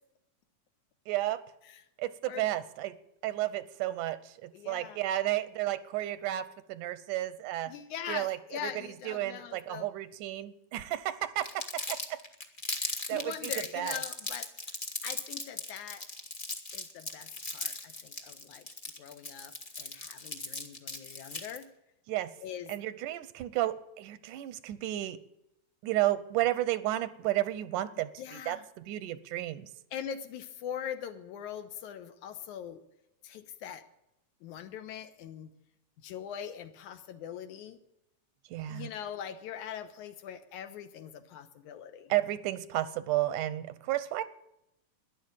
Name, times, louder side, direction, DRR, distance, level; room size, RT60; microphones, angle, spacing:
voice 1, 1.1-1.4 2.0-3.0 3.2-7.7 8.1-8.4 8.6-12.2 13.1-14.0 22.1-22.3 22.7-25.2 25.8-29.7 38.5-38.9 42.1-44.2, right 14 dB, 90° right, 15 dB, 2.3 m, -32 dB
voice 2, 4.5-5.0 7.7-9.9 12.8-14.5 15.0-16.0 16.7-18.7 19.0-19.5 19.8-21.7 22.4-22.7 28.2-28.7 29.9-32.8 33.2-33.8 34.4-35.5 36.0-37.8 38.7-42.1, left 9 dB, 80° left, 9 dB, 2.4 m, -42 dB
Crumpling crinkling, 11.4-21.6, left 2 dB, 50° left, 0.6 m, -38 dB
13.0 x 10.5 x 8.9 m, 0.84 s
omnidirectional pair, 3.5 m